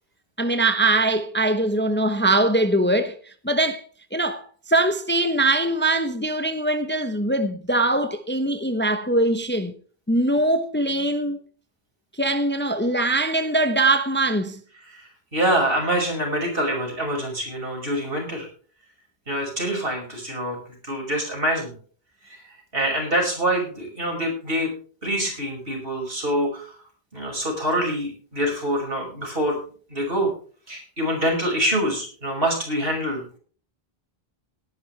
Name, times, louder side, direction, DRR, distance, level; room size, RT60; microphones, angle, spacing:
voice 1, 0.4-3.8 4.1-9.7 10.1-11.4 12.2-14.6, right 2 dB, 10° left, 1.0 m, -22 dB
voice 2, 14.9-18.5 19.3-20.6 20.8-21.7 22.3-22.4 22.7-24.7 25.0-26.7 27.1-29.6 29.9-30.3 30.7-33.4, right 1 dB, 65° right, 6.4 m, -25 dB
18.5 x 11.0 x 3.3 m
omnidirectional pair, 1.0 m